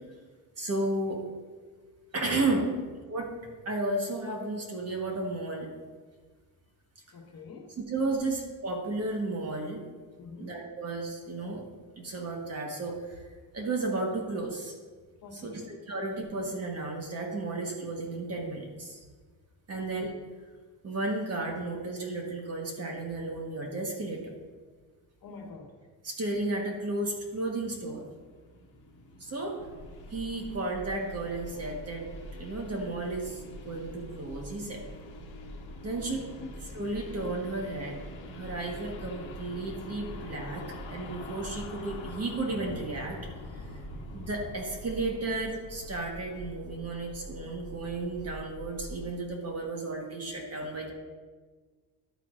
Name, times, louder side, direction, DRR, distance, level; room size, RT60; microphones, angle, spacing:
voice 1, 0.6-1.2 2.1-2.7 3.1-3.2 3.6-5.7 7.8-9.8 10.4-11.6 11.9-13.2 13.5-14.7 15.3-19.0 19.7-20.1 20.8-24.3 26.0-28.0 29.2-29.6 30.1-32.0 32.4-34.8 35.8-36.2 36.7-38.0 38.3-43.2 43.5-43.6 44.1-50.9, right 2 dB, 30° right, 1 dB, 1.3 m, -33 dB
voice 2, 7.1-7.7 8.2-8.3 10.2-10.6 15.2-15.7 19.7-19.9 25.2-25.7, left 5 dB, 45° left, 0 dB, 1.4 m, -43 dB
sound 1, 26.9-46.4, left 3 dB, 65° left, 1.3 m, -47 dB
sound 2, 29.6-49.1, right 1 dB, 70° right, 1.5 m, -46 dB
11.5 x 8.8 x 2.5 m, 1.4 s
cardioid pair, 155°, 47 cm